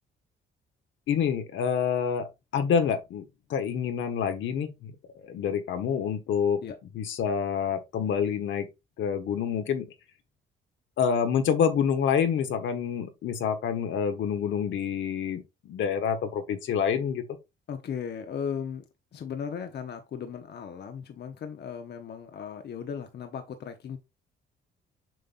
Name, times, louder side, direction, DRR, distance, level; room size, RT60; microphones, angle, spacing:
voice 1, 1.1-2.3 2.5-3.2 3.5-4.9 5.2-6.6 6.9-8.7 9.0-9.9 11.0-17.2, left 7 dB, 75° left, 1.3 m, -27 dB
voice 2, 17.7-18.8 19.1-24.0, left 7 dB, 55° left, 1.0 m, -36 dB
7.7 x 5.4 x 2.6 m
cardioid pair, 90°, 20 cm